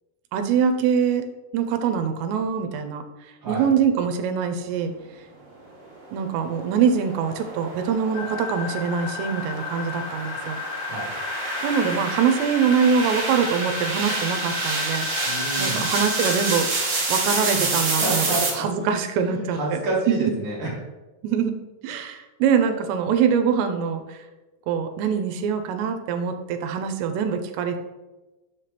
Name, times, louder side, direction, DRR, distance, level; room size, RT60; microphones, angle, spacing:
voice 1, 0.3-3.0 3.5-4.9 6.1-10.6 11.6-15.1 15.6-18.3 18.5-19.8 20.1-20.3 21.2-21.6 21.8-24.2 24.7-27.8, right 7 dB, 85° right, 7 dB, 2.8 m, -24 dB
sound 1, 6.4-18.5, right 3 dB, 55° right, 1.7 m, -28 dB
sound 2, 8.1-16.7, left 8 dB, 85° left, 2.7 m, -34 dB
voice 2, 15.2-15.9 17.5-17.7 18.0-18.9 19.2-20.7, right 2 dB, 35° right, -6 dB, 2.1 m, -29 dB
6.6 x 5.8 x 3.3 m, 1.1 s
omnidirectional pair, 4.9 m